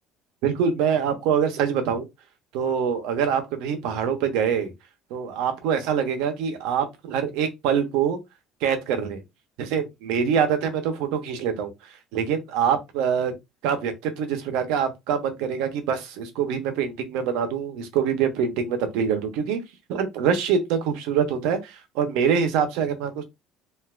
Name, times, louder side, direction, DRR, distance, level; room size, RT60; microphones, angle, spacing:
voice 1, 0.4-2.1 2.5-4.7 5.1-8.2 8.6-9.2 9.6-13.3 13.6-19.6 19.9-23.2, right 7 dB, 70° right, 0.8 m, -25 dB
3.3 x 2.6 x 2.4 m
cardioid pair, 180°, 0 cm